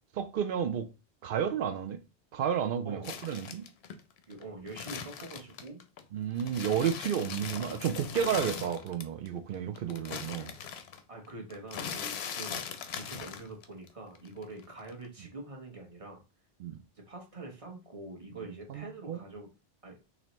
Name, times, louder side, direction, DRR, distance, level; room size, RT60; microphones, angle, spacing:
voice 1, 0.1-0.9 1.2-2.0 2.3-3.6 6.1-10.5 16.6-16.8 18.7-19.2, right 8 dB, 60° right, 0.7 m, -31 dB
voice 2, 2.8-3.2 4.3-5.8 11.1-12.6 12.9-16.2 17.0-19.5 19.8-20.0, right 2 dB, 35° right, 1.0 m, -45 dB
sound 1, 3.0-6.0 6.4-9.3 9.5-13.9 14.2-15.1, left 7 dB, 75° left, 0.8 m, -40 dB
4.0 x 3.1 x 3.0 m
omnidirectional pair, 1.1 m